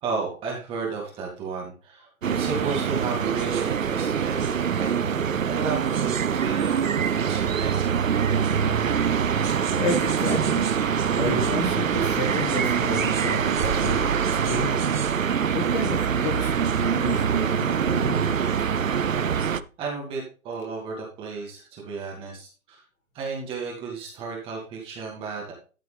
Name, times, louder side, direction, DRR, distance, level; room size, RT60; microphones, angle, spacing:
voice 1, 0.0-4.9 5.2-8.0 19.8-22.8 23.1-25.5, right 5 dB, 10° right, -2 dB, 2.2 m, -33 dB
sound 1, 2.2-19.6, right 7 dB, 65° right, 0.9 m, -24 dB
voice 2, 9.4-10.7 11.1-14.8 15.5-18.7, left 3 dB, 15° left, 1 dB, 2.6 m, -31 dB
13.0 x 6.7 x 3.4 m, 0.35 s
figure-of-eight pair, 150°, 42 cm